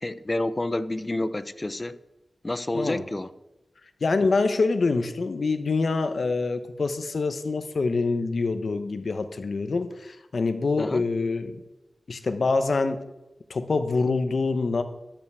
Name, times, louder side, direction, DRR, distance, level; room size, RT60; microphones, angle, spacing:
voice 1, 0.0-2.0 2.4-3.3 10.8-11.0, left 1 dB, 30° left, 15 dB, 0.6 m, -29 dB
voice 2, 4.0-11.6 12.1-13.0 13.5-14.8, left 3 dB, 70° left, 9 dB, 1.0 m, -25 dB
12.0 x 5.7 x 8.1 m, 0.98 s
wide cardioid pair, 85°, 0 cm